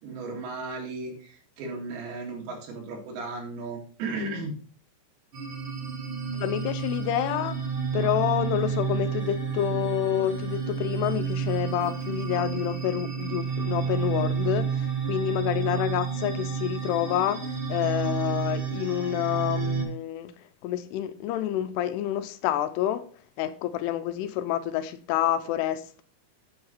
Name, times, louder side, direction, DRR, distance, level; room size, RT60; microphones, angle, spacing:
voice 1, 0.0-4.5, right 3 dB, 80° right, 4.1 m, -35 dB
sound 1, 5.3-19.8, right 6 dB, 55° right, 1.5 m, -30 dB
voice 2, 6.3-7.6 7.9-17.4 17.7-20.3 20.6-23.1 23.4-26.0, left 12 dB, 80° left, 2.6 m, -28 dB
10.5 x 4.8 x 4.1 m
omnidirectional pair, 5.0 m